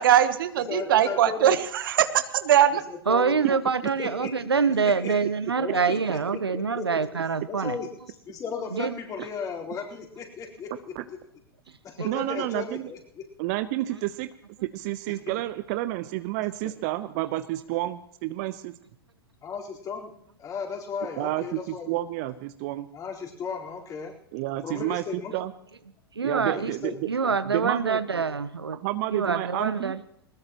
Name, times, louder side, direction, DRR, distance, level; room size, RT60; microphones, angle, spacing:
voice 1, 0.0-2.8, right 10 dB, 60° right, 12 dB, 1.1 m, -21 dB
voice 2, 0.6-1.6 2.7-3.4 4.0-4.3 4.8-5.2 5.6-6.9 7.5-11.2 11.8-13.3 15.3-15.4 16.6-16.7 19.4-20.1 20.4-21.9 22.9-24.1 24.6-25.3 26.5-27.0, left 6 dB, 25° left, -2 dB, 4.3 m, -36 dB
voice 3, 3.1-7.8 8.7-9.0 26.1-26.7 27.0-28.8 29.1-30.0, right 5 dB, 85° right, 14 dB, 0.9 m, -25 dB
voice 4, 12.0-12.8 13.4-14.3 14.6-18.7 21.2-22.9 24.3-25.0 25.3-25.5 26.2-27.0 27.5-28.0 28.8-29.9, right 16 dB, 45° right, 12 dB, 0.8 m, -30 dB
20.0 x 20.0 x 3.1 m, 0.72 s
figure-of-eight pair, 100°, 13 cm